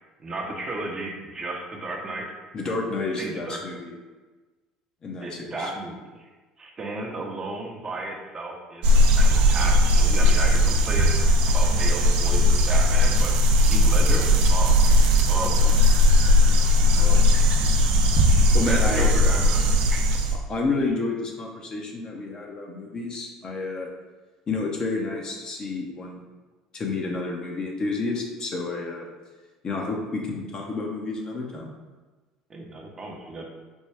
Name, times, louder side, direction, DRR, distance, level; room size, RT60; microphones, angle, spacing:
voice 1, 0.2-2.3 3.1-3.6 5.2-6.3 6.6-11.2 11.5-13.3 13.6-14.9 15.3-15.7 16.9-17.5 18.7-20.1 32.5-33.4, right 2 dB, 30° right, 0 dB, 0.8 m, -34 dB
voice 2, 2.5-3.9 5.0-5.7 18.5-19.1 20.5-23.9 24.5-26.2 26.7-29.1 29.6-31.7, left 3 dB, 40° left, 0 dB, 0.8 m, -30 dB
sound 1, 8.8-20.3, left 1 dB, 65° right, 0.5 m, -18 dB
4.4 x 2.2 x 3.4 m, 1.3 s
hypercardioid pair, 75°, 2 cm